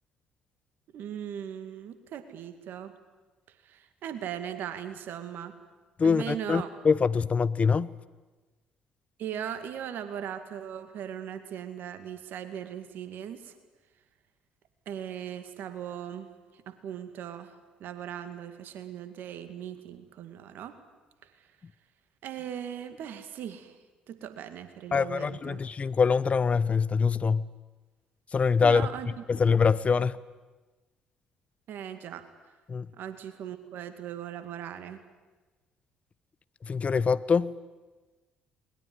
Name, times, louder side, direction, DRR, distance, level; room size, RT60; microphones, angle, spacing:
voice 1, 0.9-3.0 3.6-5.5 6.0-6.7 9.2-13.5 14.9-20.8 21.4-21.5 22.2-23.7 24.1-25.6 28.6-29.1 30.0-30.1 31.7-32.3 32.9-35.0, right 9 dB, 60° right, 2.2 m, -39 dB
voice 2, 6.0-7.9 24.9-27.5 28.3-28.9 29.3-30.2 32.7-32.9 36.6-37.6, left 5 dB, 35° left, 0.8 m, -24 dB
21.0 x 21.0 x 9.6 m
hypercardioid pair, 50°, 4 cm